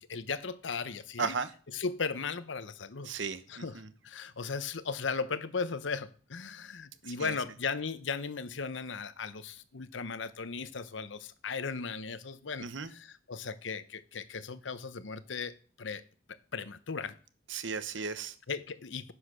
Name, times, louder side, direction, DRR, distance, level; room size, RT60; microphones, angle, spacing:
voice 1, 0.1-1.3 1.7-3.1 3.5-16.0 16.5-17.1 18.5-19.1, left 5 dB, 75° left, 0.8 m, -37 dB
voice 2, 1.2-1.5 3.1-3.9 7.2-7.3 12.6-12.9 17.5-18.3, right 5 dB, 75° right, 0.9 m, -35 dB
10.0 x 6.3 x 6.2 m
head